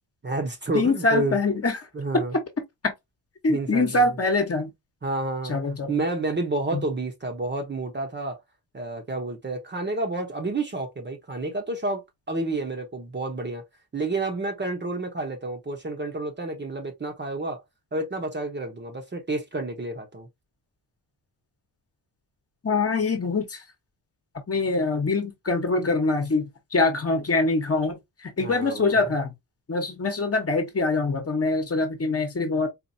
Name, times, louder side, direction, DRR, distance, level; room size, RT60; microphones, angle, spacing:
voice 1, 0.2-1.4 1.9-2.3 3.5-4.0 5.0-5.6 5.9-8.4 8.7-12.0 12.3-13.6 13.9-17.6 17.9-20.3 28.4-29.0, right 2 dB, 25° right, 0.9 m, -29 dB
voice 2, 0.7-1.8 2.1-2.4 2.8-2.9 3.4-4.7 5.5-5.9 6.7-6.8 22.6-23.6 24.5-29.3 29.7-32.7, left 3 dB, 35° left, 1.1 m, -24 dB
4.2 x 2.6 x 2.6 m
cardioid pair, 105°, 42 cm